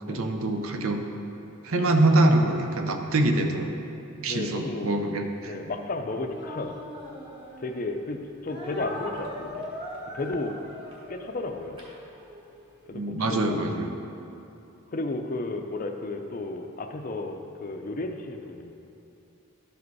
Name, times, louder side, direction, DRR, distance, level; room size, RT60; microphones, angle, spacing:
voice 1, 0.1-1.1 1.6-3.7 4.2-5.5 12.9-13.9, right 2 dB, 75° right, 5 dB, 0.7 m, -24 dB
voice 2, 4.3-5.0 5.5-6.8 7.6-9.7 10.1-10.6 11.1-11.8 12.9-13.8 14.9-18.7, left 2 dB, 40° left, 4 dB, 0.4 m, -33 dB
Speech, 6.3-7.8 8.5-12.5, left 1 dB, 25° right, 1.3 m, -40 dB
11.5 x 5.0 x 4.7 m, 2.8 s
head